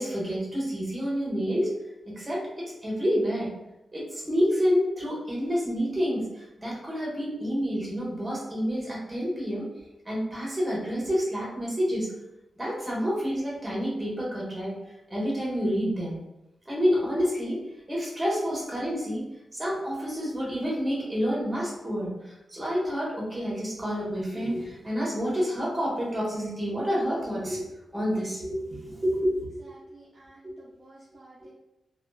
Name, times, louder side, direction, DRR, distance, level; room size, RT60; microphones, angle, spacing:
voice 1, 0.0-1.7 2.1-3.5 3.9-6.2 6.6-9.6 10.0-12.1 12.6-14.8 15.1-16.2 16.6-17.6 17.9-19.3 19.5-29.6, equal, 20° right, -5 dB, 1.4 m, -28 dB
voice 2, 29.6-31.5, right 2 dB, 40° right, -6 dB, 0.6 m, -52 dB
3.4 x 2.4 x 2.3 m, 0.93 s
cardioid pair, 70°, 0 cm